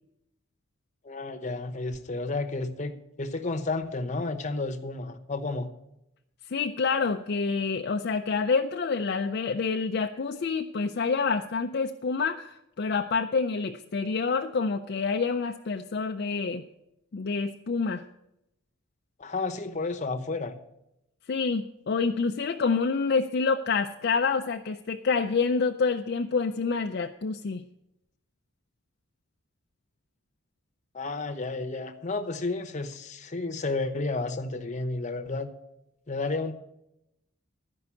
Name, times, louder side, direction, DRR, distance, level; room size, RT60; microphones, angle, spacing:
voice 1, 1.0-5.7 19.2-20.6 30.9-35.5 36.1-36.5, left 3 dB, 35° left, 6 dB, 0.9 m, -31 dB
voice 2, 6.5-16.6 17.1-18.0 21.3-27.6, left 4 dB, 55° left, 5 dB, 0.4 m, -27 dB
12.5 x 5.4 x 8.3 m, 0.85 s
head